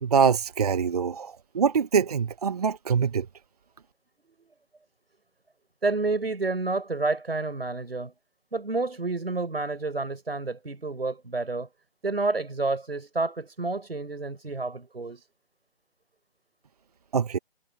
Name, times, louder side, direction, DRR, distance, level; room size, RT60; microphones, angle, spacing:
voice 1, 0.0-3.3 17.1-17.4, right 6 dB, 40° right, 1.2 m, -24 dB
voice 2, 5.8-8.1 8.5-11.7 12.0-15.2, right 3 dB, 70° right, 5.9 m, -29 dB
figure-of-eight pair, 150°, 31 cm